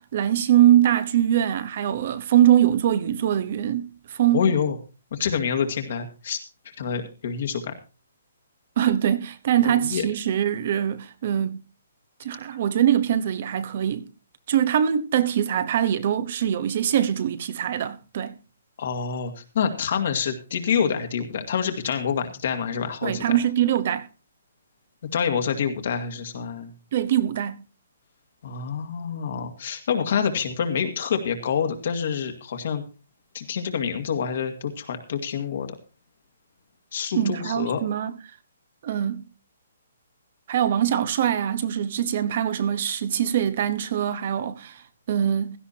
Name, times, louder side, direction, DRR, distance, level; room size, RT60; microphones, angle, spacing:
voice 1, 0.0-4.4 8.8-11.6 12.2-14.1 14.5-18.4 23.0-24.1 26.9-27.6 37.1-38.1 38.8-39.3 40.5-45.6, right 10 dB, 30° right, 0.9 m, -23 dB
voice 2, 4.3-4.8 5.1-6.4 6.8-7.7 9.6-10.1 18.8-23.4 25.1-26.7 28.4-32.8 33.3-35.7 36.9-37.8, left 7 dB, 40° left, 1.9 m, -27 dB
16.5 x 13.5 x 2.8 m
hypercardioid pair, 180°, 0 cm